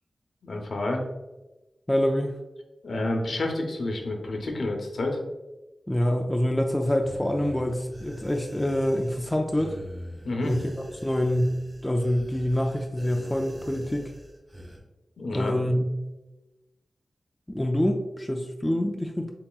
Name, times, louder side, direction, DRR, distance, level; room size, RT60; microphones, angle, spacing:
voice 1, 0.4-1.0 2.8-5.2 10.2-10.5 15.2-15.5, left 2 dB, 60° left, 2 dB, 0.8 m, -29 dB
voice 2, 1.9-2.3 5.9-9.8 10.4-10.7 11.0-14.1 15.3-16.1 17.5-19.3, equal, 10° left, 3 dB, 0.3 m, -26 dB
sound 1, 7.0-14.8, equal, 25° right, 1.3 m, -43 dB
7.0 x 2.9 x 2.3 m, 1.0 s
wide cardioid pair, 140°, 0 cm